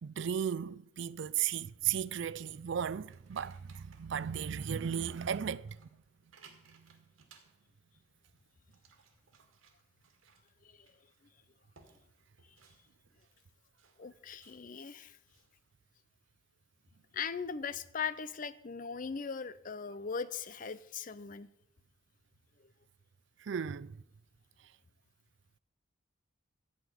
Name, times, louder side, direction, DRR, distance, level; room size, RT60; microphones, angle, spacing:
voice 1, 0.0-5.9 23.4-24.0, right 8 dB, 60° right, 0.4 m, -35 dB
sound 1, 1.2-15.7, right 4 dB, 85° right, 1.9 m, -65 dB
voice 2, 10.6-11.0 14.0-15.2 17.1-21.5, left 6 dB, 40° left, 0.5 m, -39 dB
14.5 x 5.1 x 9.2 m
head